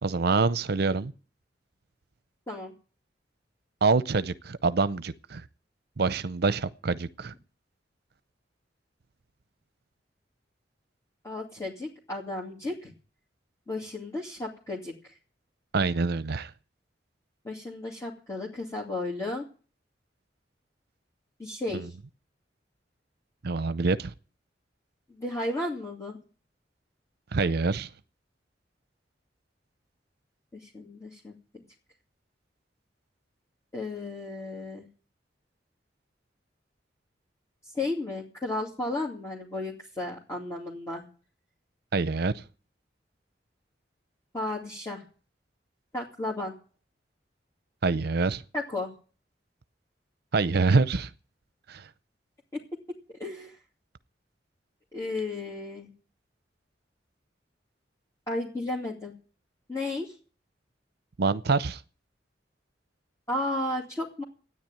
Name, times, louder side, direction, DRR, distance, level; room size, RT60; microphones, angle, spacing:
voice 1, 0.0-1.1 3.8-5.4 6.0-7.3 15.7-16.5 21.7-21.9 23.4-24.1 27.3-27.9 41.9-42.4 47.8-48.4 50.3-51.1 51.7-51.9 61.2-61.8, right 4 dB, 60° right, 0.6 m, -26 dB
voice 2, 11.2-12.9 13.7-15.1 17.4-19.4 21.4-21.9 25.1-26.2 30.5-31.3 33.7-34.8 37.7-41.0 44.3-45.0 45.9-46.5 48.5-48.9 52.5-52.6 53.2-53.6 54.9-55.9 58.3-59.1 59.7-60.1 63.3-64.2, left 2 dB, 15° left, 2.5 m, -33 dB
13.5 x 9.8 x 8.9 m
head